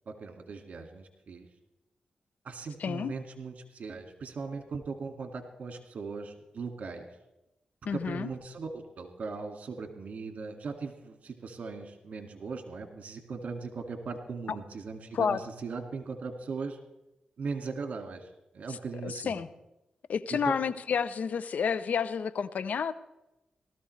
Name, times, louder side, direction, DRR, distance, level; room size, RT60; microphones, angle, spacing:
voice 1, 0.1-1.5 2.4-7.1 7.9-16.8 17.4-18.3 18.5-19.4 20.3-20.4, right 4 dB, 65° right, 5 dB, 2.0 m, -39 dB
voice 2, 2.8-3.1 7.8-8.3 14.5-14.6 15.1-15.4 18.7-18.8 19.0-19.5 20.1-22.9, left 6 dB, 70° left, 15 dB, 0.6 m, -30 dB
18.5 x 13.5 x 3.2 m, 0.93 s
cardioid pair, 55°, 3 cm